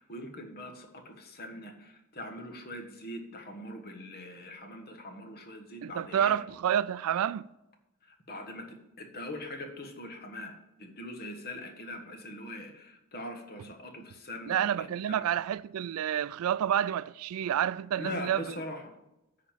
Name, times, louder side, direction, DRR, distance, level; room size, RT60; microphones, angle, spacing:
voice 1, 0.0-6.4 8.0-15.3 18.0-18.9, left 1 dB, 45° left, 1.4 m, -42 dB
voice 2, 5.8-7.5 14.5-18.6, right 9 dB, 70° right, 0.3 m, -29 dB
10.5 x 4.1 x 7.3 m
head